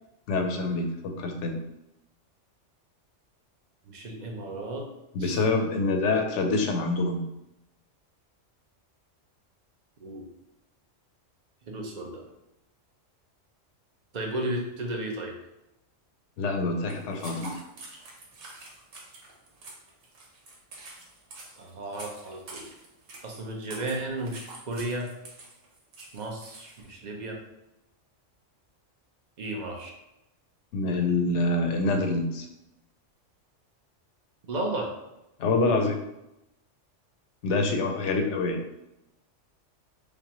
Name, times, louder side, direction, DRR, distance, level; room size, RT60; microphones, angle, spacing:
voice 1, 0.3-1.6 5.1-7.2 16.4-17.6 30.7-32.5 35.4-36.0 37.4-38.6, left 3 dB, 75° left, 4 dB, 0.9 m, -26 dB
voice 2, 3.8-4.9 5.2-5.4 10.0-10.3 11.7-12.2 14.1-15.4 21.6-22.7 23.2-25.1 26.0-27.4 29.4-29.9 34.5-34.9, right 1 dB, 45° right, 1 dB, 0.6 m, -34 dB
sound 1, 16.9-26.9, right 2 dB, 90° right, 1.3 m, -46 dB
5.2 x 2.1 x 2.9 m, 0.90 s
omnidirectional pair, 1.3 m